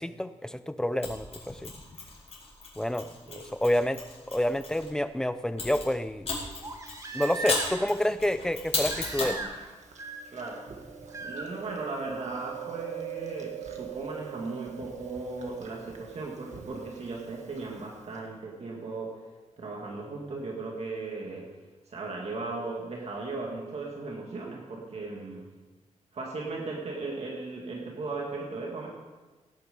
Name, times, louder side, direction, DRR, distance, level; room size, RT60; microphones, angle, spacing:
voice 1, 0.0-1.7 2.8-4.0 4.3-6.3 7.1-9.4, left 1 dB, 5° left, 12 dB, 0.5 m, -29 dB
Mechanisms, 1.0-4.9 5.6-9.4, left 3 dB, 60° left, 4.8 m, -36 dB
Crying sobbing, 6.6-7.9 8.9-9.7 10.0-10.5 11.1-11.5 13.1-13.2, right 3 dB, 30° right, 1.5 m, -38 dB
Chewing mastication, 9.3-18.2, right 9 dB, 80° right, 1.8 m, -43 dB
voice 2, 10.3-10.7 11.2-19.2 19.6-21.5 21.9-25.5 26.1-28.9, right 3 dB, 60° right, -1 dB, 2.1 m, -37 dB
17.5 x 9.3 x 5.2 m, 1.2 s
wide cardioid pair, 155°, 12 cm